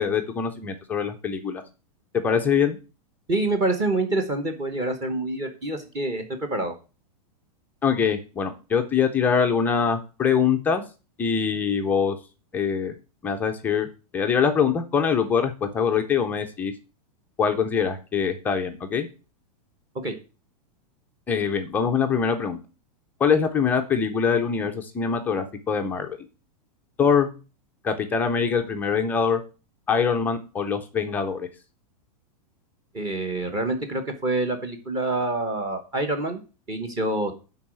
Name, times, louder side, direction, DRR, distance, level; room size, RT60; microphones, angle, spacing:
voice 1, 0.0-1.6 2.2-2.8 7.8-10.8 11.2-12.2 12.5-12.9 13.2-16.7 17.4-19.1 21.3-22.6 23.2-26.2 27.0-27.3 27.8-29.4 29.9-31.5, left 6 dB, 10° left, 5 dB, 0.5 m, -23 dB
voice 2, 3.3-6.7 19.9-20.1 32.9-36.4 36.7-37.4, right 2 dB, 20° right, 6 dB, 1.0 m, -26 dB
10.0 x 4.0 x 7.4 m, 0.33 s
supercardioid pair, 175°, 20 cm